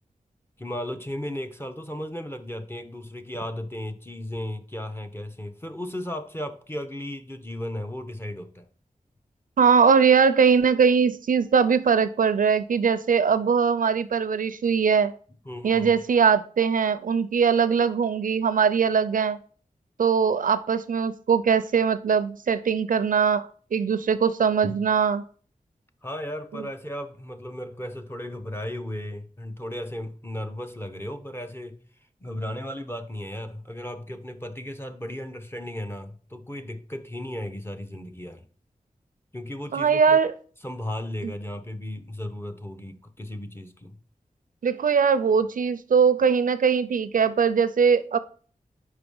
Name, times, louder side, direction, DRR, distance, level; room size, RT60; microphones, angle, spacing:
voice 1, 0.6-8.7 15.4-15.9 24.6-24.8 26.0-31.8 32.2-38.4 39.3-40.2 40.6-44.0, left 1 dB, 15° left, 0.8 m, -35 dB
voice 2, 9.6-15.1 15.6-19.4 20.0-25.2 26.5-26.6 39.7-40.3 41.2-41.3 44.6-48.2, right 6 dB, 75° right, 0.5 m, -21 dB
5.4 x 4.9 x 5.3 m
wide cardioid pair, 85°, 14 cm